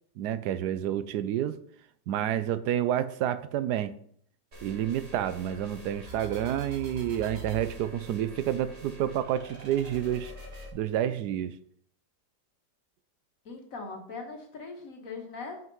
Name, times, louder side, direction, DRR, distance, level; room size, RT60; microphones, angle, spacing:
voice 1, 0.2-1.5 2.1-3.9 4.6-10.3 10.7-11.5, right 11 dB, 75° right, 13 dB, 1.1 m, -29 dB
sound 1, 4.5-10.7, right 1 dB, 40° right, 1.9 m, -44 dB
voice 2, 13.4-15.6, left 4 dB, 55° left, 2 dB, 1.7 m, -40 dB
5.8 x 5.5 x 5.4 m, 0.62 s
omnidirectional pair, 1.8 m